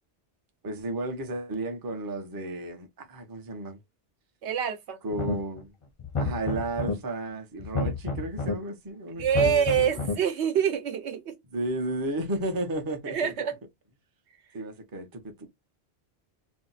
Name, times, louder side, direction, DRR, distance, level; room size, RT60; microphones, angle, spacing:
voice 1, 0.6-3.8 5.0-5.7 6.2-9.9 11.5-13.3 14.5-15.5, right 2 dB, 25° right, 0.5 m, -33 dB
voice 2, 4.4-5.0 9.2-11.4 13.1-13.5, right 8 dB, 80° right, 1.0 m, -26 dB
sound 1, 5.1-5.6 6.0-6.9 7.6-8.5 9.2-10.1, left 3 dB, 40° left, 0.5 m, -30 dB
2.6 x 2.0 x 4.0 m
omnidirectional pair, 1.1 m